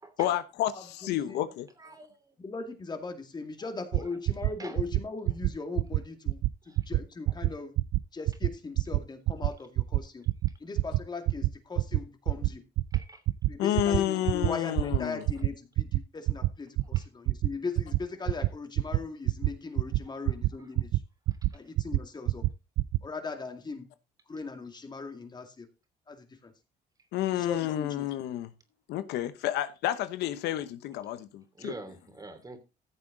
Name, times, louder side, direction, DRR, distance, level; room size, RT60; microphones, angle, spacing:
voice 1, 0.2-1.6 13.6-15.2 27.1-28.5 28.9-31.7, left 12 dB, 80° left, 1.0 m, -30 dB
voice 2, 0.7-1.4 2.4-7.8 8.1-10.2 10.6-12.6 13.5-21.0 21.5-22.5 23.0-23.9 24.3-25.7 26.1-26.5 27.3-28.1, left 4 dB, 25° left, 2.3 m, -39 dB
voice 3, 1.8-2.3 4.6-4.8 6.6-6.8 12.9-13.2 16.9-17.1 20.1-20.2 20.6-20.7 31.6-32.6, right 2 dB, 20° right, 3.1 m, -45 dB
sound 1, 3.9-4.0 4.3-4.5 4.8-5.0 5.3-5.5 5.8-6.0 6.3-6.5 6.8-7.0 7.3-7.5 7.8-8.0 8.3-8.5 8.8-9.0 9.3-9.5 9.8-10.0 10.3-10.5 10.8-11.0 11.3-11.5 11.8-12.0 12.3-12.5 12.8-13.0 13.3-13.5 13.8-14.0 14.3-14.5 14.8-15.0 15.3-15.5 15.8-16.0 16.3-16.5 16.8-17.0 17.3-17.5 17.8-18.0 18.3-18.5 18.8-19.0 19.3-19.5 19.8-20.0 20.3-20.5 20.8-21.0 21.3-21.5 21.8-22.0 22.3-22.5 22.8-23.0, right 18 dB, 75° right, 0.5 m, -25 dB
15.0 x 7.4 x 3.9 m
cardioid pair, 110°, 17 cm